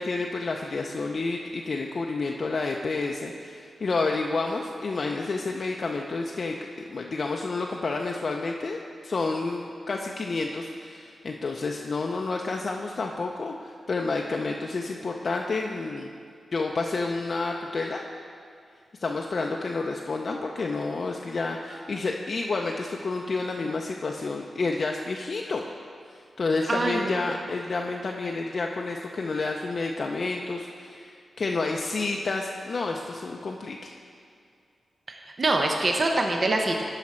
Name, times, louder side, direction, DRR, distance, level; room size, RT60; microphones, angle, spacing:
voice 1, 0.0-6.6 6.9-16.1 16.5-18.0 19.0-25.6 26.1-33.9, left 3 dB, 55° left, 1 dB, 0.5 m, -30 dB
voice 2, 26.7-27.3 35.1-36.8, right 2 dB, 45° right, 2 dB, 0.7 m, -25 dB
12.0 x 4.9 x 4.3 m, 2.3 s
cardioid pair, 70°, 0 cm